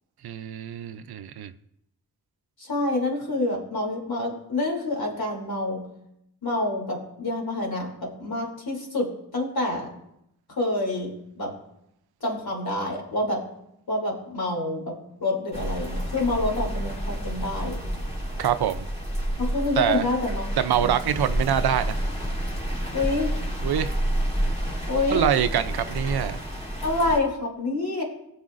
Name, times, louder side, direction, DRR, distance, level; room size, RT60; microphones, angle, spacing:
voice 1, 0.2-1.5 18.4-18.9 19.8-20.1 20.6-22.0 23.6-24.0 25.1-26.4, right 9 dB, 80° right, 12 dB, 0.6 m, -24 dB
voice 2, 2.6-5.8 6.4-9.9 10.5-11.1 11.4-11.5 12.2-13.4 13.9-17.8 19.4-20.4 20.7-20.9 22.9-23.4 24.9-25.3 26.8-28.0, left 2 dB, 70° left, -1 dB, 2.9 m, -27 dB
sound 1, 15.5-27.2, equal, 15° left, 2.4 m, -29 dB
19.5 x 7.0 x 2.5 m, 0.81 s
cardioid pair, 50°, 38 cm